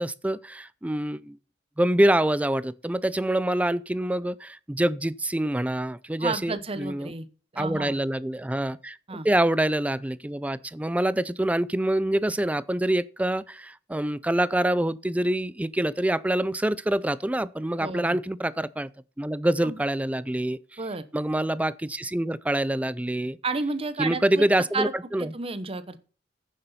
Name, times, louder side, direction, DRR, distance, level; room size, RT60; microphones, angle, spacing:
voice 1, 0.0-1.4 1.8-7.1 7.6-18.9 19.2-20.8 21.1-23.4 24.0-25.3, right 1 dB, 5° right, 0.4 m, -26 dB
voice 2, 6.2-7.3 7.5-8.0 9.1-9.3 17.8-18.2 19.6-19.8 20.8-21.0 23.4-24.5 24.7-24.9 25.2-26.0, right 3 dB, 30° right, 0.9 m, -31 dB
9.5 x 6.8 x 5.6 m
head